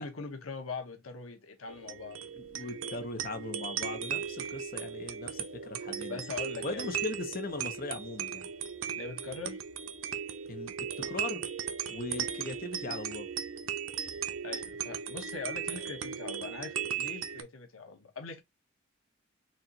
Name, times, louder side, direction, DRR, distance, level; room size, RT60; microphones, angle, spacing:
voice 1, 0.0-3.2 6.1-7.0 9.0-9.6 14.4-18.4, left 4 dB, 90° left, 0.9 m, -42 dB
sound 1, 1.7-17.4, right 8 dB, 80° right, 0.6 m, -37 dB
voice 2, 2.4-6.2 6.6-8.5 10.5-10.7 11.1-11.4 11.9-13.3, left 3 dB, 45° left, 0.8 m, -39 dB
4.4 x 2.4 x 3.9 m
head